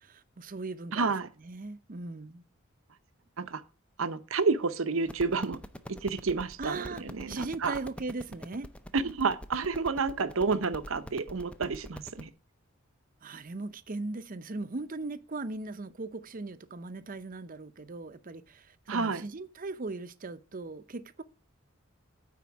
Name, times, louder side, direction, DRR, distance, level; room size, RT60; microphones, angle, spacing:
voice 1, 0.0-1.1 1.4-2.4 6.6-8.7 13.2-21.2, right 3 dB, 40° right, 0.6 m, -39 dB
voice 2, 0.9-1.3 3.4-3.6 4.0-5.6 5.9-7.7 8.9-12.3 18.9-19.2, right 4 dB, 80° right, 0.8 m, -30 dB
sound 1, 5.0-12.2, equal, 5° left, 0.5 m, -45 dB
9.4 x 4.4 x 7.1 m
head